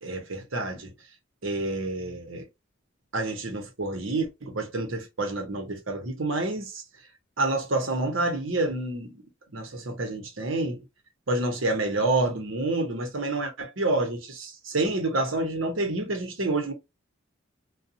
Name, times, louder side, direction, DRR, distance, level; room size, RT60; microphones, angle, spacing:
voice 1, 0.0-0.9 1.4-2.5 3.1-6.8 7.4-9.2 9.5-10.8 11.3-16.7, right 2 dB, 75° right, 0.9 m, -28 dB
2.7 x 2.3 x 2.5 m
head